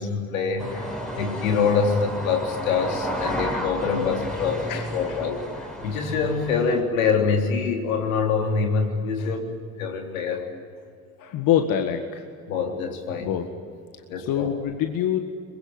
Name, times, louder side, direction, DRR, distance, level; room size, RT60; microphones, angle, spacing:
voice 1, 0.0-9.5 9.8-10.4 12.5-13.3 14.1-14.5, left 5 dB, 80° left, 3 dB, 3.8 m, -25 dB
sound 1, 0.6-6.8, equal, ahead, 5.9 m, -32 dB
voice 2, 11.2-12.2 13.2-13.4 14.3-15.2, left 9 dB, 55° left, 6 dB, 2.0 m, -24 dB
24.0 x 21.5 x 9.5 m, 2.3 s
hypercardioid pair, 70°, 41 cm